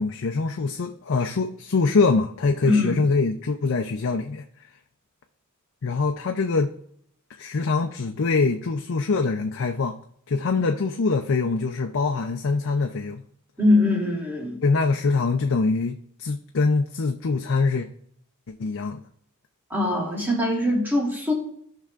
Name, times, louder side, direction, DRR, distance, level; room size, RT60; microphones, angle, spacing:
voice 1, 0.0-4.4 5.8-6.7 7.4-10.0 10.3-13.2 14.6-17.9 18.6-19.0, left 4 dB, 60° left, 4 dB, 0.6 m, -24 dB
voice 2, 2.6-3.0 13.6-14.6 19.7-21.3, left 2 dB, 10° right, -3 dB, 2.6 m, -22 dB
15.5 x 5.6 x 2.5 m, 0.68 s
head